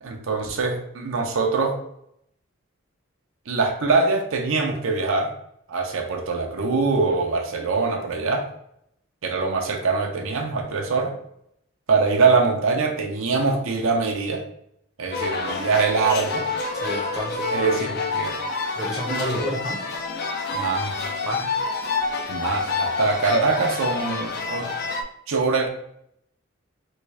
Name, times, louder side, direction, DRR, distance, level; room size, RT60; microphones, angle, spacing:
voice 1, 0.0-1.8 3.5-5.3 5.7-8.5 9.2-11.1 11.9-14.4 15.0-16.5 17.5-18.3 19.1-19.4 20.5-21.1 22.3-24.7 25.3-25.7, right 4 dB, 80° right, 3 dB, 0.6 m, -23 dB
sound 1, 15.1-25.0, left 4 dB, 50° left, 0.4 m, -28 dB
voice 2, 16.7-17.7 18.7-19.8 21.2-21.4, equal, ahead, -3 dB, 0.7 m, -30 dB
3.6 x 2.6 x 3.2 m, 0.74 s
head